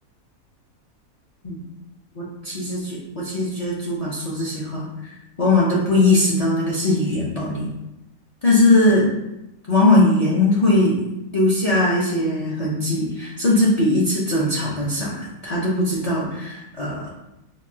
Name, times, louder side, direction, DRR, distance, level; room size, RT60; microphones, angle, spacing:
voice 1, 2.2-7.7 8.4-9.1 9.7-11.0 11.3-17.1, left 2 dB, 50° left, -5 dB, 0.4 m, -20 dB
4.6 x 2.3 x 2.7 m, 0.92 s
omnidirectional pair, 1.5 m